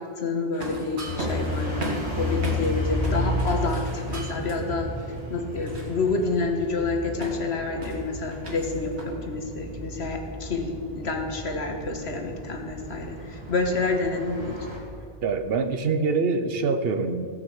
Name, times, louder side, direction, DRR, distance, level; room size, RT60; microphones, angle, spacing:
voice 1, 0.0-14.6, left 3 dB, 75° left, 3 dB, 1.7 m, -28 dB
sound 1, 0.5-2.8 3.0-4.5 5.2-6.2 7.2-9.0, right 2 dB, 80° right, 2.2 m, -36 dB
sound 2, 1.0-14.8, left 1 dB, 25° right, 3.0 m, -33 dB
voice 2, 15.2-17.3, right 4 dB, 65° right, 9 dB, 1.0 m, -25 dB
16.0 x 6.1 x 7.2 m, 2.6 s
omnidirectional pair, 1.1 m